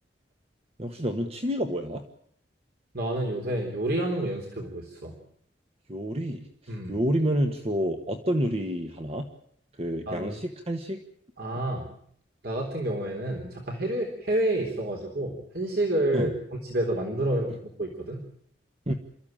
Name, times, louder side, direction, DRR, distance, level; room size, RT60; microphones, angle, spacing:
voice 1, 0.8-2.0 5.9-9.2 9.8-11.0 16.1-16.3 18.9-19.0, equal, 35° right, 5 dB, 1.6 m, -29 dB
voice 2, 2.9-5.1 6.7-7.0 10.1-10.4 11.4-11.9 12.4-16.3 16.6-17.5 17.8-18.2, right 1 dB, 60° right, 1 dB, 3.6 m, -29 dB
28.0 x 14.5 x 9.0 m, 0.67 s
head